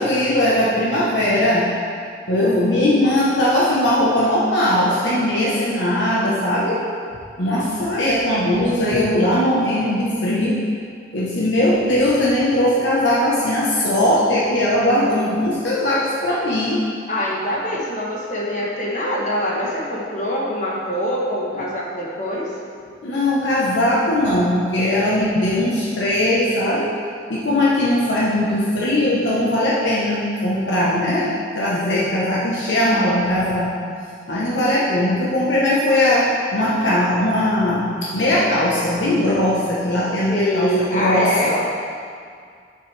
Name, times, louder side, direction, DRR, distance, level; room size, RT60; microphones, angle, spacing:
voice 1, 0.0-1.7 2.3-6.8 7.4-10.6 11.1-16.8 23.0-26.9 27.3-33.7 34.3-41.6, left 1 dB, 85° left, -6 dB, 1.2 m, -19 dB
voice 2, 17.1-22.5 40.3-41.6, equal, 40° left, -4 dB, 1.3 m, -24 dB
8.6 x 7.5 x 3.4 m, 2.2 s
head